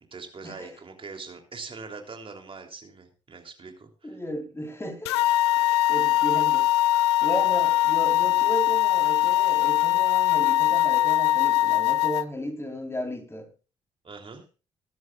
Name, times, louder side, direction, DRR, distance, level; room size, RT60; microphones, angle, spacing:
voice 1, 0.1-4.2 14.0-14.4, right 4 dB, 40° right, 3.3 m, -42 dB
voice 2, 4.0-5.1 5.5-6.7 7.2-13.5, equal, 20° left, 4.0 m, -34 dB
sound 1, 5.1-12.2, left 15 dB, 85° left, 0.5 m, -22 dB
21.5 x 10.5 x 2.4 m
hypercardioid pair, 45°, 14 cm